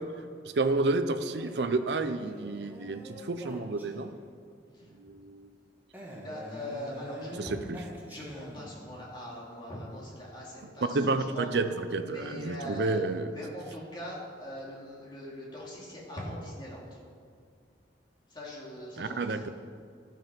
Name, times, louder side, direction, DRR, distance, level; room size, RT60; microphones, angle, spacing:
voice 1, 0.4-4.1 4.9-5.5 7.4-7.8 10.9-13.3 19.0-19.5, right 3 dB, 70° right, 10 dB, 0.5 m, -30 dB
Male speech man speaking, 1.4-4.4 5.9-8.9, equal, 10° right, 1.3 m, -45 dB
voice 2, 4.7-5.2 6.0-7.5 8.1-11.0 11.3-11.5 12.0-13.0 13.3-17.0 18.3-19.5, left 1 dB, 25° left, -5 dB, 2.4 m, -42 dB
12.0 x 5.5 x 5.6 m, 2.3 s
head